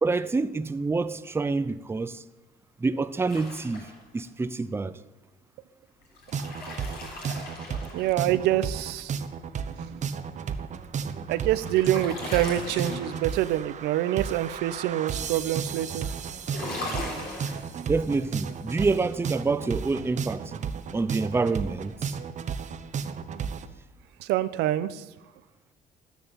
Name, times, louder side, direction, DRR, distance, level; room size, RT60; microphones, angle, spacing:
voice 1, 0.0-2.2 2.8-5.0 17.9-20.5 20.9-22.1, right 3 dB, 15° right, 0.6 m, -27 dB
sound 1, 3.3-4.2 6.0-8.4 11.1-13.4 16.4-17.6, left 2 dB, 65° left, 6.6 m, -38 dB
sound 2, 6.3-23.7, right 6 dB, 45° right, 1.1 m, -33 dB
voice 2, 7.9-9.1 9.6-10.0 11.3-16.2 24.2-25.0, right 13 dB, 90° right, 0.9 m, -26 dB
13.0 x 10.5 x 9.0 m
cardioid pair, 110°, 17 cm